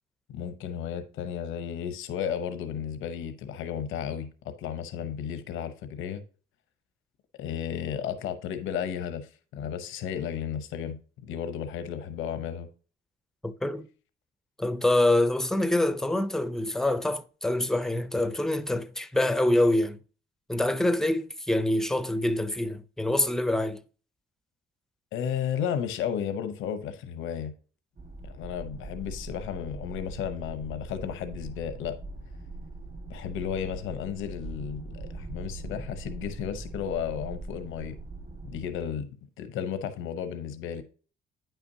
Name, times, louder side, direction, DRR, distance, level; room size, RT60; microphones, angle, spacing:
voice 1, 0.3-6.2 7.4-11.0 11.2-12.7 25.1-27.5 28.2-32.0 33.1-38.0 38.4-39.1 39.4-40.8, left 8 dB, 90° left, 0.8 m, -33 dB
voice 2, 13.4-13.9 14.6-20.0 20.5-23.8, left 1 dB, ahead, 0.5 m, -25 dB
sound 1, 28.0-38.9, right 2 dB, 45° right, 1.8 m, -41 dB
8.8 x 5.8 x 2.7 m
cardioid pair, 90°, 20 cm